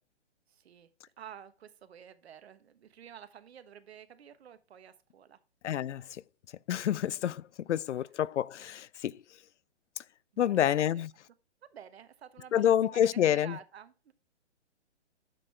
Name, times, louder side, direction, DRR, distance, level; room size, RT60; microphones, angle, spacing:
voice 1, 0.5-0.9 1.2-5.4 10.3-10.6 10.9-11.0 11.6-14.1, right 8 dB, 65° right, 1.2 m, -51 dB
voice 2, 5.6-6.2 6.7-9.2 10.4-11.1 12.5-13.6, left 10 dB, 85° left, 0.5 m, -28 dB
9.0 x 6.5 x 3.3 m
hypercardioid pair, 150°, 35 cm